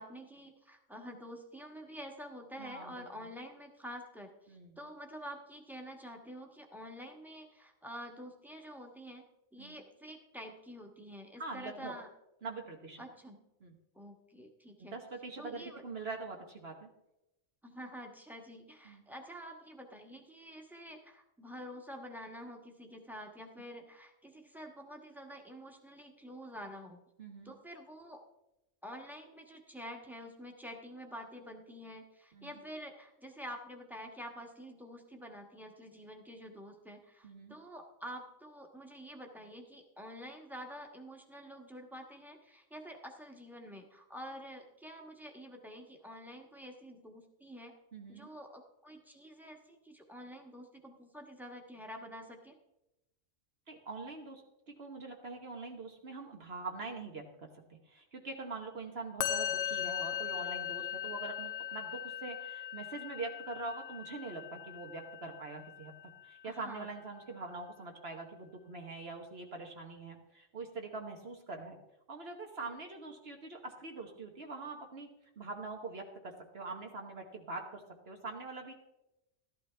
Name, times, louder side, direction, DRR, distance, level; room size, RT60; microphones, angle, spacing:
voice 1, 0.0-9.2 9.5-12.1 13.0-13.4 13.9-15.0 15.4-15.8 17.6-27.0 27.4-28.2 28.8-47.7 48.1-52.6 66.4-66.9, equal, ahead, 3 dB, 1.2 m, -48 dB
voice 2, 2.6-3.3 4.5-4.8 9.6-9.8 11.4-11.9 12.4-13.0 13.6-13.8 14.8-16.9 18.8-19.0 27.2-27.5 32.3-32.6 37.2-37.6 47.9-48.3 53.7-54.4 54.7-65.9 66.2-71.8 72.1-75.1 75.4-78.7, right 3 dB, 55° right, 2 dB, 1.3 m, -44 dB
Musical instrument, 59.2-66.5, left 10 dB, 90° left, 1.0 m, -39 dB
13.5 x 11.5 x 3.4 m, 0.91 s
omnidirectional pair, 1.3 m